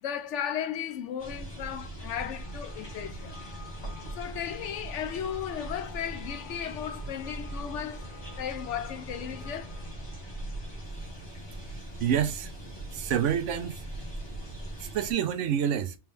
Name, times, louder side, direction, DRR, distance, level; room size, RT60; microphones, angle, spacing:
voice 1, 0.0-3.4 4.2-8.1 8.4-9.7, left 9 dB, 80° left, 0.9 m, -35 dB
sound 1, 1.2-15.1, right 1 dB, 20° left, 1.2 m, -40 dB
sound 2, 2.2-11.9, left 4 dB, 50° left, 0.7 m, -52 dB
voice 2, 12.0-12.5 12.9-13.8 14.8-16.0, right 9 dB, 85° right, 0.9 m, -28 dB
3.5 x 3.1 x 3.3 m
omnidirectional pair, 1.2 m